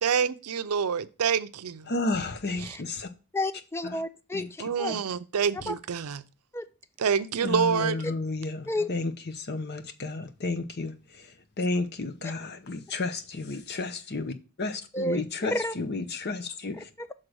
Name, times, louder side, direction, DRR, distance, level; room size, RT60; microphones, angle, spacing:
voice 1, 0.0-1.9 2.6-2.8 4.6-6.2 7.0-8.0, right 6 dB, 85° right, 0.5 m, -27 dB
voice 2, 1.9-3.1 3.8-4.0 4.3-4.7 7.4-11.3 11.6-16.9, left 3 dB, 50° left, 0.7 m, -32 dB
voice 3, 3.3-4.9 5.7-5.8 6.5-6.7 8.7-8.9 14.9-15.7 16.7-17.1, left 1 dB, 10° left, 0.4 m, -31 dB
6.5 x 3.8 x 6.1 m
head